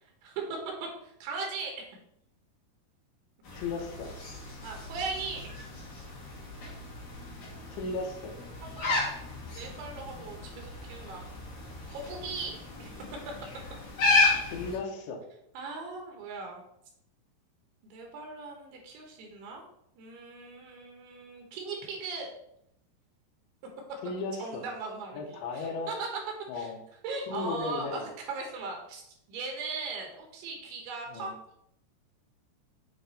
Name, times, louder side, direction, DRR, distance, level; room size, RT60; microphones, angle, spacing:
voice 1, 0.2-0.6 1.0-1.8 4.6-5.5 8.6-9.1 9.5-11.2 11.9-13.0 15.5-16.6 17.8-19.6 20.0-22.3 24.4-26.1 26.5-26.7 27.0-29.0 29.3-31.3, right 4 dB, 80° right, 1 dB, 3.1 m, -38 dB
sound 1, 3.4-14.8, left 3 dB, 55° left, 3.4 m, -33 dB
voice 2, 3.5-4.1 7.7-8.3 12.8-12.9 14.5-15.2 24.0-24.7 25.1-25.9 26.5-26.8 27.3-28.0 31.1-31.3, left 3 dB, 80° left, 1 dB, 2.8 m, -35 dB
8.5 x 3.4 x 4.1 m, 0.76 s
omnidirectional pair, 4.7 m